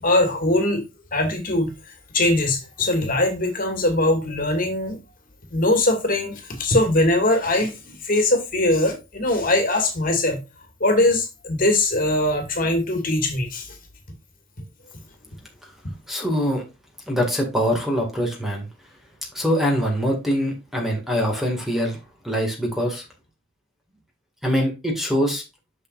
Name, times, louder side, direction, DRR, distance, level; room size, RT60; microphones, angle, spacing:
voice 1, 0.0-0.8 1.1-5.0 5.5-10.4 10.8-13.7, left 1 dB, 45° left, 2.2 m, -21 dB
voice 2, 16.1-16.6 17.1-18.7 19.3-22.0 22.2-23.0 24.4-25.4, equal, ahead, 2.0 m, -23 dB
7.3 x 6.4 x 2.5 m
head